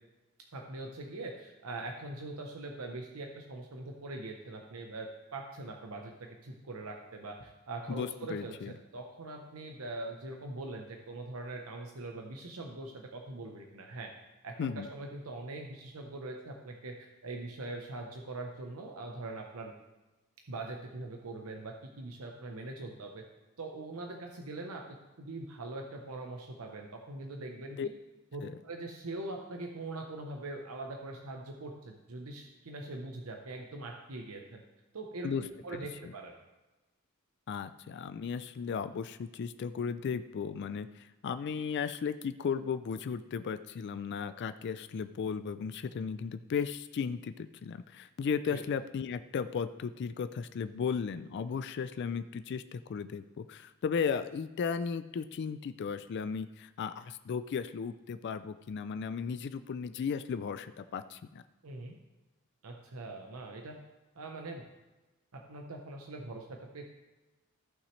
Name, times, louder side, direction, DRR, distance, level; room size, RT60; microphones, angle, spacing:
voice 1, 0.5-14.1 14.4-19.7 20.5-23.2 23.6-24.8 25.2-27.8 28.3-34.6 34.9-36.3 48.5-48.6 61.6-62.0 62.6-63.8 64.1-64.6 65.3-66.9, right 2 dB, 85° right, 2 dB, 0.8 m, -42 dB
voice 2, 7.9-8.7 14.6-14.9 27.8-27.9 28.4-28.5 35.2-35.4 36.0-36.1 37.5-61.4, left 6 dB, 55° left, 11 dB, 0.3 m, -35 dB
14.5 x 5.9 x 3.2 m, 1.1 s
head